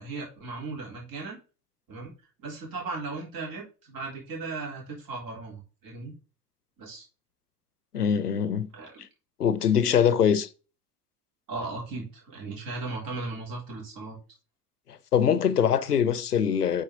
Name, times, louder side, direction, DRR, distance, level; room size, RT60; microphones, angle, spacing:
voice 1, 0.0-1.4 1.9-2.1 2.4-6.1 6.8-7.0 8.7-9.0 11.5-14.2, right 3 dB, 45° right, 3.6 m, -37 dB
voice 2, 7.9-8.7 9.4-10.5 14.9-16.8, left 8 dB, 90° left, 0.6 m, -23 dB
8.7 x 4.0 x 3.8 m
figure-of-eight pair, 65°, 45 cm